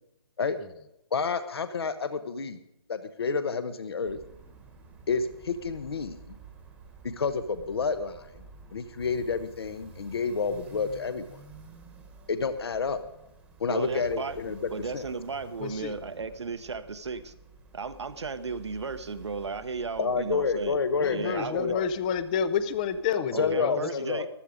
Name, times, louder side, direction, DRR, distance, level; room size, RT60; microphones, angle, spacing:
voice 1, 1.1-2.6 2.9-4.2 5.1-6.2 7.0-8.4 8.7-11.4 12.3-13.0 13.6-14.6 14.9-15.1 20.0-21.9 23.3-24.3, left 5 dB, 65° left, 11 dB, 1.1 m, -29 dB
sound 1, 4.0-23.1, right 4 dB, 10° right, 1.2 m, -51 dB
voice 2, 13.7-14.4 14.7-17.3 17.7-20.8 21.1-21.7 23.2-24.3, right 4 dB, 85° right, 10 dB, 1.1 m, -35 dB
voice 3, 15.6-15.9 21.0-23.8, left 7 dB, 20° left, 14 dB, 0.5 m, -29 dB
14.5 x 12.0 x 5.1 m, 0.83 s
hypercardioid pair, 160°, 14 cm